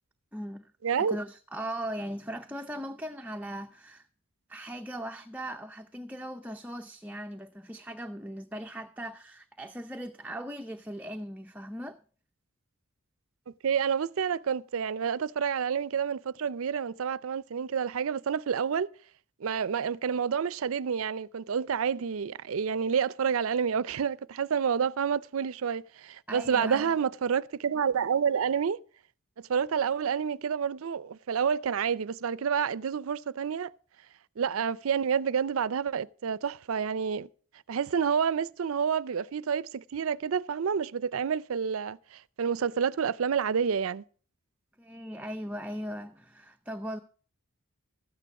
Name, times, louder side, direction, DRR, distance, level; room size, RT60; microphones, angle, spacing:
voice 1, 0.3-0.7 1.0-4.1 4.5-12.0 26.3-26.9 44.8-47.0, right 1 dB, 5° right, 0.6 m, -39 dB
voice 2, 0.8-1.2 13.6-18.9 19.4-28.8 29.5-33.7 34.4-37.3 37.7-44.0, right 7 dB, 70° right, 0.5 m, -29 dB
13.5 x 9.2 x 4.8 m
head